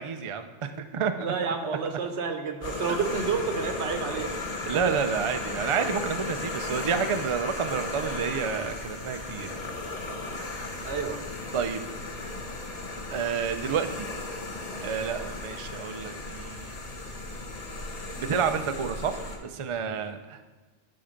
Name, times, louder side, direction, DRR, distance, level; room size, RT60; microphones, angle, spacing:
voice 1, 0.0-1.3 2.9-3.0 4.7-9.5 11.5-11.8 13.1-14.1 14.8-16.8 18.1-20.4, right 6 dB, 55° right, 8 dB, 0.3 m, -29 dB
voice 2, 1.2-4.3 4.7-5.0 10.8-11.2, right 5 dB, 70° right, 6 dB, 1.1 m, -30 dB
sound 1, 2.6-19.4, left 2 dB, 35° left, 0.9 m, -35 dB
11.5 x 4.3 x 5.1 m, 1.3 s
omnidirectional pair, 1.2 m